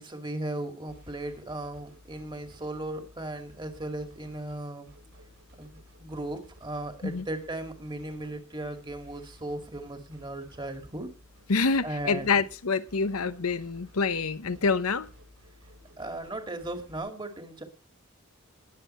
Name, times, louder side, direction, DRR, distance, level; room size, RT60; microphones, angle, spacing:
voice 1, 0.0-4.9 5.6-11.1 11.8-12.4 16.0-17.6, right 1 dB, 20° right, 2.1 m, -37 dB
sound 1, 0.9-17.0, left 1 dB, 70° right, 7.7 m, -55 dB
voice 2, 11.5-15.1, left 4 dB, 85° left, 0.9 m, -27 dB
20.5 x 7.6 x 4.3 m
head